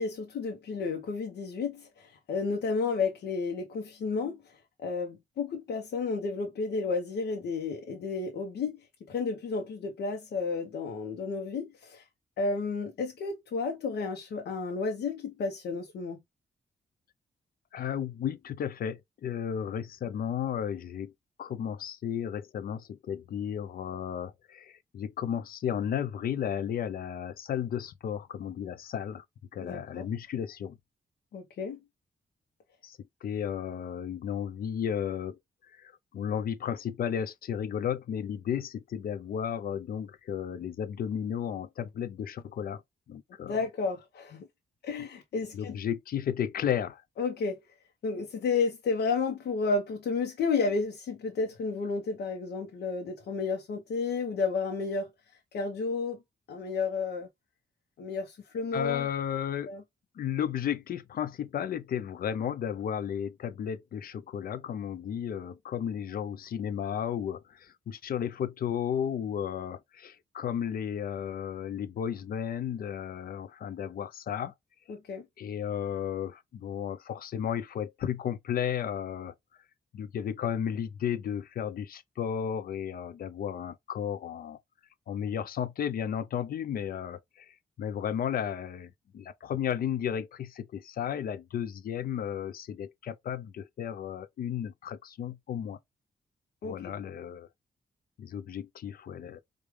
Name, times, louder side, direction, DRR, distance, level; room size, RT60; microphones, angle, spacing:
voice 1, 0.0-8.8 9.1-12.0 12.4-16.2 29.6-30.1 31.3-31.8 43.5-44.5 44.8-45.8 47.2-47.6 48.0-55.1 55.5-56.2 56.5-57.3 58.0-59.1 59.7-59.8 74.9-75.2 96.6-96.9, left 4 dB, 90° left, 0.8 m, -32 dB
voice 2, 17.7-21.1 21.4-29.2 29.5-30.8 32.8-35.4 35.8-42.8 43.1-43.6 45.5-47.0 58.7-59.7 60.2-74.5 75.4-79.3 79.9-84.6 85.1-95.8 96.6-97.5 98.2-99.4, left 9 dB, 60° left, 0.5 m, -33 dB
4.9 x 2.3 x 3.1 m
wide cardioid pair, 130°, 17 cm